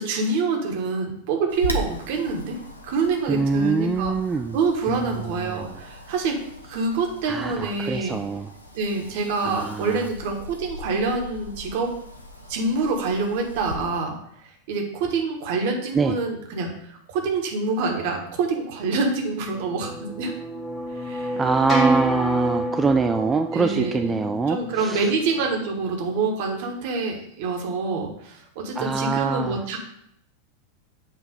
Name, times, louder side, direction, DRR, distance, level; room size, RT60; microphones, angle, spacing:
voice 1, 0.0-2.6 2.8-4.1 4.5-6.4 6.7-8.2 8.7-11.9 12.5-14.1 14.7-20.3 21.0-21.4 23.5-24.2 24.5-29.8, right 4 dB, 50° right, 2 dB, 1.2 m, -26 dB
Wind, 1.5-13.8, left 1 dB, 80° left, 0.7 m, -38 dB
voice 2, 3.3-4.6 4.9-5.7 7.3-8.5 9.4-10.1 15.9-16.2 21.4-25.1 28.8-29.6, right 4 dB, 15° right, 5 dB, 0.3 m, -24 dB
sound 1, 19.1-25.6, right 1 dB, 25° left, 1.3 m, -29 dB
7.7 x 2.9 x 5.1 m, 0.74 s
figure-of-eight pair, 90°, 0 cm